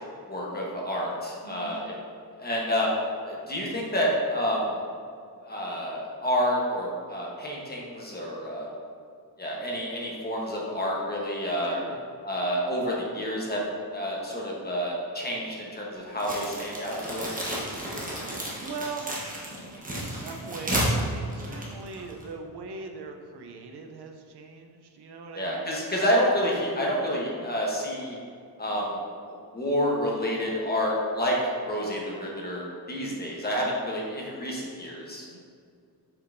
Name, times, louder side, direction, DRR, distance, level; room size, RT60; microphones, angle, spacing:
voice 1, 0.3-1.9 2.4-2.9 3.2-4.7 5.4-8.7 9.4-11.8 12.2-13.6 13.9-17.4 25.3-28.2 28.6-29.0 29.3-35.4, equal, 25° left, -3 dB, 1.1 m, -29 dB
voice 2, 1.4-1.9 11.6-12.0 18.6-19.1 19.9-25.8 35.3-35.4, right 4 dB, 85° right, 3 dB, 0.7 m, -40 dB
sound 1, 16.2-22.3, right 1 dB, 20° right, 1.1 m, -32 dB
7.0 x 5.3 x 2.6 m, 2.3 s
wide cardioid pair, 170°, 38 cm